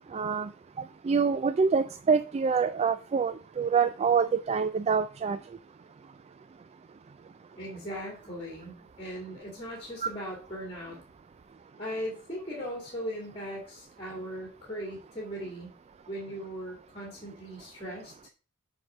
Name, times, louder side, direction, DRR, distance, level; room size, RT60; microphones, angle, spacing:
voice 1, 0.1-0.5 1.0-5.4 10.0-10.1, right 5 dB, 30° right, 12 dB, 0.3 m, -26 dB
voice 2, 7.5-11.0 11.8-15.7 16.1-18.2, equal, 25° left, -1 dB, 2.5 m, -38 dB
6.9 x 4.9 x 6.5 m, 0.38 s
head